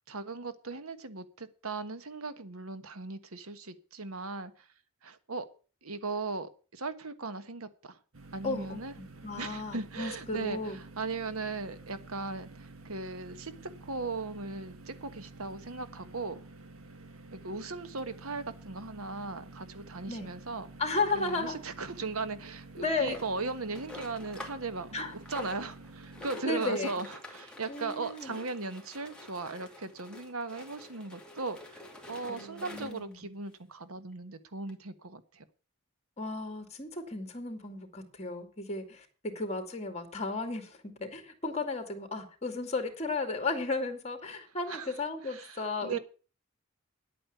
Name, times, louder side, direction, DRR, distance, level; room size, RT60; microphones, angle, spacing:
voice 1, 0.1-4.7 5.0-5.5 5.8-8.0 8.3-8.9 9.4-13.5 13.8-16.4 17.3-20.7 21.1-25.0 25.3-31.8 32.1-35.4 44.7-44.9 45.2-46.0, right 3 dB, 85° right, 12 dB, 1.4 m, -38 dB
sound 1, 8.1-26.3, right 2 dB, 70° right, 1.8 m, -50 dB
voice 2, 8.4-10.8 20.1-20.3 20.8-21.6 22.8-23.2 24.9-25.1 26.4-26.9 27.7-28.4 32.3-33.2 36.2-46.0, left 3 dB, 30° left, 7 dB, 2.5 m, -34 dB
sound 2, 23.1-24.7 25.0-33.1 33.8-33.9 34.1-34.2 34.7-34.8, left 2 dB, 5° left, 2.5 m, -48 dB
10.0 x 8.8 x 8.0 m, 0.37 s
head